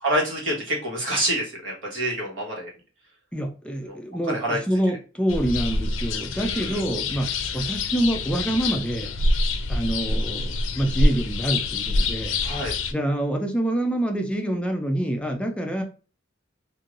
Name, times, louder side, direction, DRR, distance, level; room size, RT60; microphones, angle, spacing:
voice 1, 0.0-2.7 3.9-4.0 4.2-4.6 6.4-6.8 12.4-12.8, right 1 dB, 85° right, -2 dB, 1.3 m, -27 dB
voice 2, 3.3-9.1 9.7-12.3 12.9-15.8, right 1 dB, 5° left, 3 dB, 0.4 m, -26 dB
sound 1, 5.3-12.9, left 2 dB, 85° left, 0.4 m, -26 dB
3.1 x 2.5 x 2.5 m, 0.36 s
head